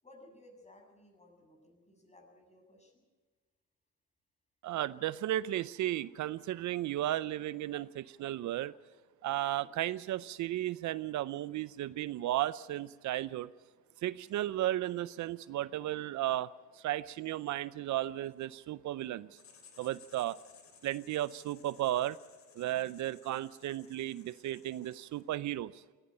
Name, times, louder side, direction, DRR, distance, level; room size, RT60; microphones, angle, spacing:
voice 1, 0.0-3.0 9.6-9.8 14.2-14.6 22.6-23.0, left 1 dB, 20° left, 2 dB, 7.5 m, -59 dB
voice 2, 4.6-8.7 9.2-13.5 14.0-16.5 16.8-19.3 19.8-20.4 20.8-22.2 22.6-25.8, right 14 dB, 70° right, 17 dB, 0.6 m, -34 dB
Writing, 19.3-25.3, left 6 dB, 65° left, 3.4 m, -60 dB
19.5 x 16.0 x 8.9 m, 1.4 s
cardioid pair, 90°, 30 cm